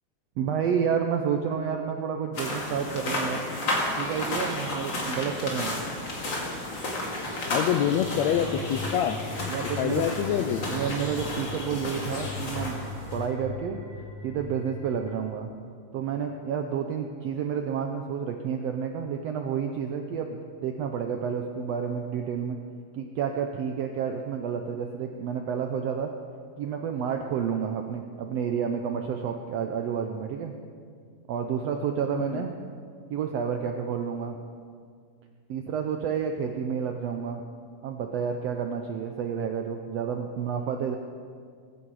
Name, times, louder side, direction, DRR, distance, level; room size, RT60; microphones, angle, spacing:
voice 1, 0.4-3.5 4.0-5.7 9.5-10.0 10.7-12.8 13.1-13.8 14.2-15.5 15.9-22.6 22.9-26.1 26.6-30.5 31.3-32.5 33.1-34.4 35.5-37.4 37.8-41.0, right 7 dB, 80° right, 4 dB, 1.4 m, -30 dB
sound 1, 2.3-13.3, left 1 dB, 40° left, 2.5 m, -32 dB
voice 2, 7.5-9.2 9.8-10.7 32.1-32.4, left 9 dB, 85° left, 7 dB, 1.5 m, -26 dB
sound 2, 7.8-15.1, left 2 dB, 25° right, 5.4 m, -39 dB
22.0 x 9.9 x 4.8 m, 2.1 s
omnidirectional pair, 3.7 m